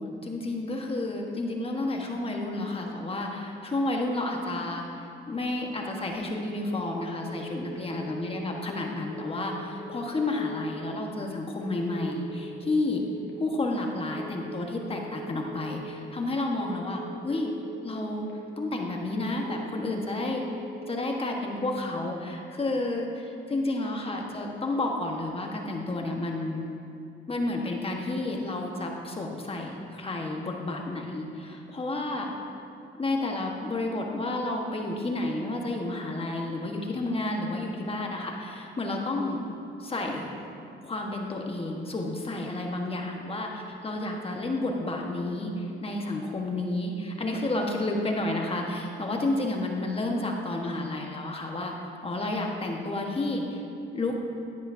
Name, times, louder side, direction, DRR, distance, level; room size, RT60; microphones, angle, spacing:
voice 1, 0.0-13.0 13.4-17.5 17.8-18.2 18.6-20.4 20.9-26.7 27.3-32.3 32.9-39.4 39.8-40.3 40.8-51.7 52.0-53.6 53.9-54.1, left 2 dB, 30° left, 1 dB, 1.2 m, -31 dB
sound 1, 6.6-7.0 7.3-7.7 7.9-8.3 9.1-9.5 9.8-10.2 10.4-10.8 11.6-12.0 12.3-12.7 12.9-13.3 14.1-14.5 14.8-15.2 15.4-15.8 16.6-17.0 17.3-17.7 18.0-18.3 19.1-19.5 19.8-20.2 20.5-20.9, left 2 dB, 65° left, 1.6 m, -43 dB
10.5 x 9.9 x 2.7 m, 2.6 s
cardioid pair, 90°, 20 cm